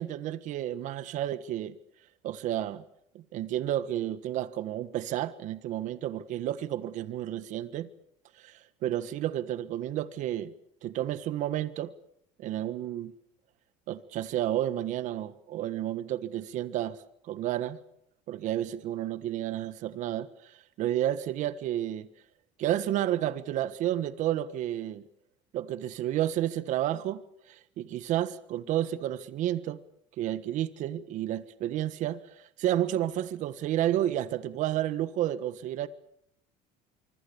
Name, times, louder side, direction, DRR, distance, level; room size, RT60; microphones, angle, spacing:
voice 1, 0.0-1.7 2.2-2.8 3.1-7.9 8.4-10.5 10.8-11.9 12.4-13.1 13.9-17.0 17.3-17.8 18.3-22.1 22.6-25.0 25.5-27.2 27.5-29.8 30.2-35.9, right 12 dB, 55° right, 1.5 m, -31 dB
25.5 x 24.5 x 7.1 m
cardioid pair, 135°, 15 cm